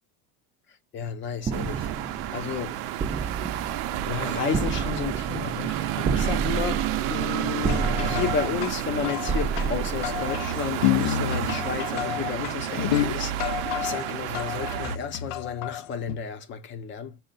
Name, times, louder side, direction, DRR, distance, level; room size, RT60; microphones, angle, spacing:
voice 1, 0.9-2.8 3.2-3.7 4.1-17.2, left 7 dB, 35° left, 0.6 m, -33 dB
sound 1, 1.4-10.9, right 5 dB, 20° right, 0.5 m, -31 dB
sound 2, 1.5-15.0, right 12 dB, 80° right, 0.6 m, -30 dB
sound 3, 7.6-16.2, left 11 dB, 85° left, 0.6 m, -30 dB
5.5 x 2.1 x 3.9 m
cardioid pair, 135°, 34 cm